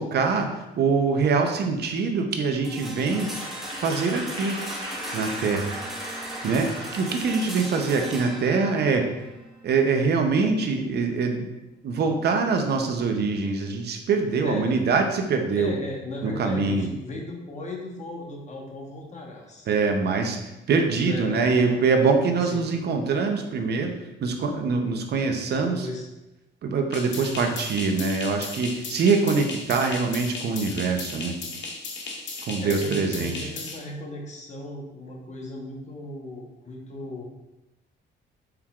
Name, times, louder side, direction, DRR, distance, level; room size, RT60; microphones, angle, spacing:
voice 1, 0.0-3.3 3.8-4.6 5.1-5.7 6.4-9.1 9.6-11.5 11.8-15.8 16.2-16.9 19.7-20.4 20.7-25.9 26.6-31.4 32.5-33.5, right 4 dB, 55° right, 5 dB, 0.6 m, -24 dB
sound 1, 2.6-12.5, equal, ahead, 0.9 m, -39 dB
Applause / Crowd, 2.9-9.2, right 1 dB, 25° right, 1.2 m, -38 dB
voice 2, 14.4-14.8 15.5-19.7 21.0-21.8 22.4-22.7 25.5-26.1 27.2-27.6 32.3-37.2, left 2 dB, 35° left, -1 dB, 1.0 m, -36 dB
sound 2, 26.9-33.8, left 3 dB, 65° left, 0.8 m, -36 dB
4.5 x 3.6 x 2.3 m, 0.98 s
cardioid pair, 90°, 20 cm